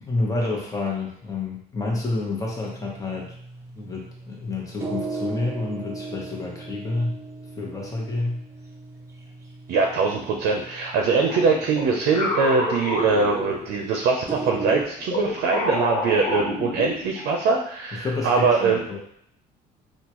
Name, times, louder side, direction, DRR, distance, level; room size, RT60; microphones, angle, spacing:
voice 1, 0.1-3.3 3.7-7.2 7.6-8.4 18.0-19.0, left 2 dB, 20° left, -2 dB, 1.0 m, -29 dB
sound 1, 2.6-14.8, right 3 dB, 20° right, 0.6 m, -38 dB
voice 2, 9.7-18.8, right 4 dB, 75° right, 2 dB, 0.5 m, -22 dB
sound 2, 11.3-14.0 14.6-17.3, left 2 dB, 55° left, 0.8 m, -29 dB
3.6 x 2.4 x 3.0 m, 0.69 s
cardioid pair, 110°, 17 cm